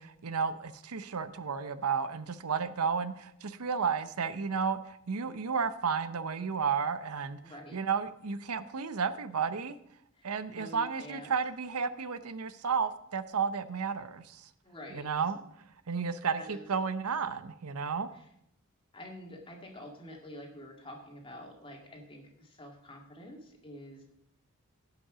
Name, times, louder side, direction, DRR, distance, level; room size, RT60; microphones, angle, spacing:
voice 1, 0.0-7.4 7.7-9.8 10.2-14.4 14.9-15.4 15.9-18.1, right 6 dB, 90° right, 13 dB, 0.7 m, -32 dB
voice 2, 7.4-7.8 10.2-11.3 14.6-15.1 16.3-16.7 18.1-18.3 18.9-24.0, left 1 dB, 25° left, 1 dB, 2.1 m, -47 dB
16.5 x 5.9 x 5.0 m, 0.76 s
head